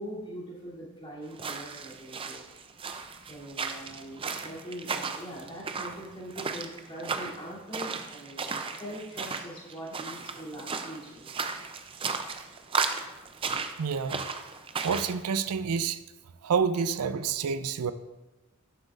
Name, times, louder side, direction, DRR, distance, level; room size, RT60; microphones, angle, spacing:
voice 1, 0.0-2.4 3.2-11.5, equal, 25° left, -7 dB, 2.8 m, -42 dB
sound 1, 1.3-15.2, right 5 dB, 25° right, 0.4 m, -35 dB
voice 2, 13.8-14.2 14.8-16.0 16.4-17.9, right 6 dB, 85° right, 13 dB, 0.4 m, -28 dB
11.5 x 7.8 x 2.5 m, 1.1 s
head